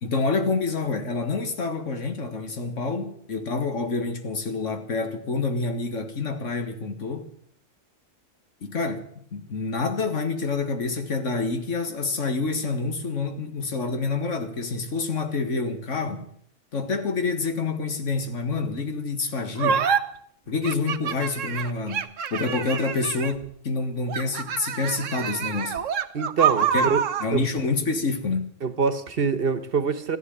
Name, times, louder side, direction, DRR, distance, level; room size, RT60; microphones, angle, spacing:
voice 1, 0.0-7.3 8.6-16.3 16.7-19.9 20.5-25.8 26.7-26.9 27.2-28.5, left 3 dB, 85° left, 2.0 m, -27 dB
sound 1, 19.6-20.0 20.6-23.4 24.1-27.3, right 8 dB, 90° right, 1.3 m, -26 dB
voice 2, 26.1-27.0 27.3-27.4 28.6-30.2, right 5 dB, 50° right, 1.3 m, -25 dB
14.5 x 11.0 x 8.6 m
omnidirectional pair, 1.3 m